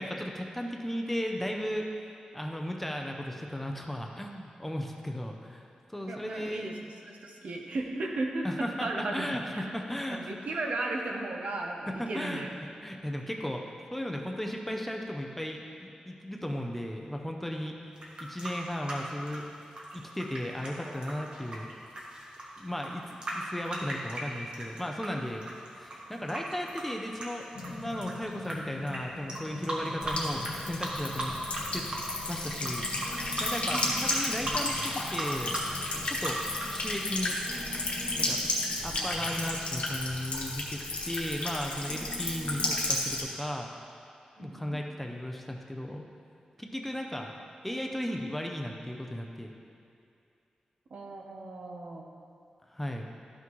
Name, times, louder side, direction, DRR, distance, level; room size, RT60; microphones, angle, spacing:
voice 1, 0.0-1.9 2.3-5.6 5.9-6.8 8.4-10.2 11.9-13.6 13.9-17.7 18.2-19.4 19.9-21.7 22.6-23.0 23.3-25.4 25.8-31.3 31.7-31.8 32.3-35.6 36.1-37.4 38.1-38.4 38.8-43.7 44.4-46.0 46.6-47.3 47.6-49.5 52.7-53.1, left 1 dB, 5° left, 1 dB, 0.5 m, -36 dB
voice 2, 6.1-6.8 7.1-9.3 9.5-9.7 10.1-12.5 33.7-34.1 44.4-44.8 50.9-52.1, right 2 dB, 65° right, 1 dB, 0.9 m, -35 dB
sound 1, 18.0-25.1 25.4-28.5 28.9-29.0 29.3-30.6 30.8-31.6 31.9-36.8, right 1 dB, 40° right, 1.2 m, -37 dB
sound 2, 27.5-39.6, left 3 dB, 85° left, 0.8 m, -45 dB
Buzz / Water tap faucet / Trickle dribble, 30.0-43.2, left 2 dB, 55° left, 1.2 m, -33 dB
12.5 x 5.9 x 3.0 m, 2.5 s
wide cardioid pair, 175°, 2 cm